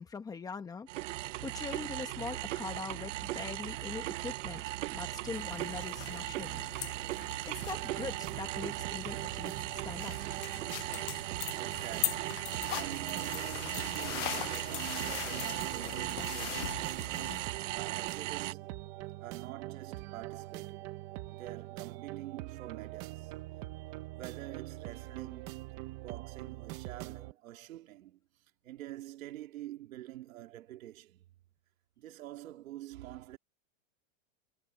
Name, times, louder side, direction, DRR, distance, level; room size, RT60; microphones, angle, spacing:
voice 1, 0.0-4.6 4.9-6.6 6.9-7.1 7.4-9.5 9.8-10.2, left 5 dB, 10° left, 1.3 m, -42 dB
sound 1, 0.9-18.5, right 18 dB, 65° right, 0.6 m, -38 dB
sound 2, 5.3-17.5, left 18 dB, 65° left, 0.5 m, -41 dB
sound 3, 7.6-27.3, right 18 dB, 30° right, 0.8 m, -43 dB
voice 2, 10.6-17.0 17.7-18.8 19.2-20.8 21.3-23.3 24.1-25.6 26.0-28.2 28.6-31.3 32.0-33.4, right 14 dB, 90° right, 3.1 m, -47 dB
supercardioid pair, 175°, 40 cm